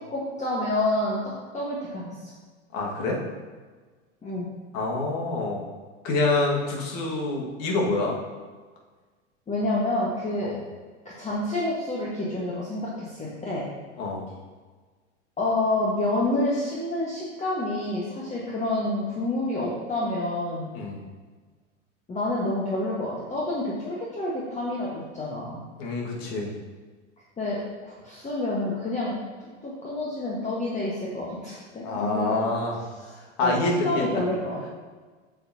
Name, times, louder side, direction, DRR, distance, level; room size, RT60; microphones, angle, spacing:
voice 1, 0.0-2.3 4.2-4.5 9.5-10.6 11.0-13.7 15.4-20.7 22.1-25.6 27.4-29.2 29.6-32.4 32.9-34.7, left 2 dB, 20° left, -5 dB, 1.5 m, -28 dB
voice 2, 2.7-3.2 4.7-5.7 6.0-8.2 14.0-14.2 20.7-21.0 25.8-26.5 31.8-32.8 33.4-34.0, left 2 dB, 50° left, -1 dB, 1.9 m, -26 dB
8.4 x 6.8 x 2.8 m, 1.4 s
figure-of-eight pair, 85°, 37 cm